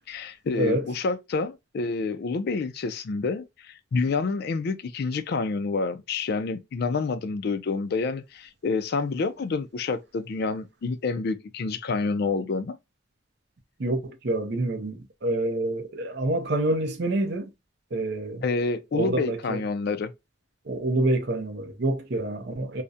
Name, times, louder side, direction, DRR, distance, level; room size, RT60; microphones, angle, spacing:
voice 1, 0.1-12.8 18.4-20.1, left 4 dB, 50° left, 0.3 m, -28 dB
voice 2, 13.8-17.5 17.9-18.4 18.9-19.6 20.7-22.8, right 1 dB, 55° right, 0.5 m, -27 dB
2.4 x 2.1 x 2.6 m
head